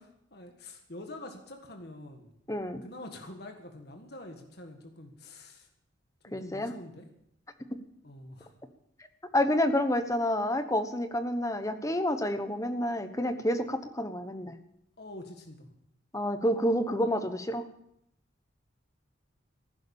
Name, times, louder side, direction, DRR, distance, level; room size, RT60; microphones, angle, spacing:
voice 1, 0.3-2.3 2.8-5.7 6.2-7.1 8.0-8.5 15.0-15.7, left 1 dB, 55° left, 4 dB, 1.6 m, -46 dB
voice 2, 2.5-2.8 6.3-6.7 9.3-14.6 16.1-17.6, left 1 dB, 15° left, 9 dB, 1.0 m, -29 dB
15.5 x 11.5 x 7.0 m, 0.77 s
head